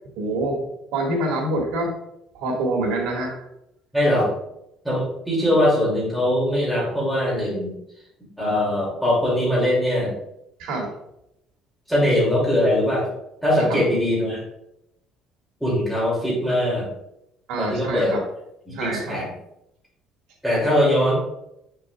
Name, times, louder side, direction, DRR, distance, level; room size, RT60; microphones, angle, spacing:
voice 1, 0.2-0.6 0.9-1.9 2.3-3.3 10.6-10.9 13.7-13.8 17.5-18.2 18.7-19.2, right 2 dB, 85° right, 0 dB, 2.0 m, -25 dB
voice 2, 3.9-4.3 4.8-7.7 8.4-10.1 11.9-13.1 13.4-14.4 15.6-16.9 17.6-18.2 18.7-19.3 20.4-21.2, left 1 dB, ahead, -6 dB, 2.8 m, -21 dB
7.6 x 6.7 x 2.4 m, 0.81 s
cardioid pair, 170°, 0 cm